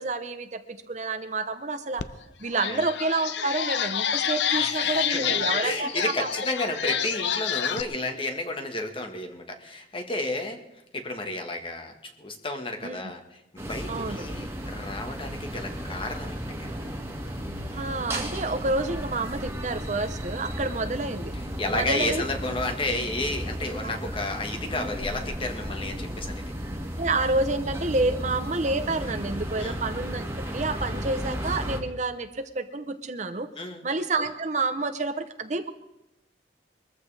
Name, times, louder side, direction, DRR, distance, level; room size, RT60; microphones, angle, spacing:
voice 1, 0.0-2.0 2.4-6.3 12.8-13.0 13.9-14.3 17.7-21.3 21.7-22.2 23.8-24.0 27.0-30.2 30.5-33.5 33.8-35.7, right 3 dB, 40° right, 9 dB, 0.8 m, -29 dB
sound 1, 2.0-2.1 2.5-7.8, left 8 dB, 85° left, 0.7 m, -28 dB
voice 2, 4.5-10.6 10.9-16.7 21.6-26.4 29.6-29.8 33.6-33.8, left 2 dB, 30° left, 4 dB, 1.6 m, -32 dB
sound 2, 13.6-31.8, equal, 15° right, 1.9 m, -34 dB
22.5 x 14.5 x 3.4 m, 0.87 s
head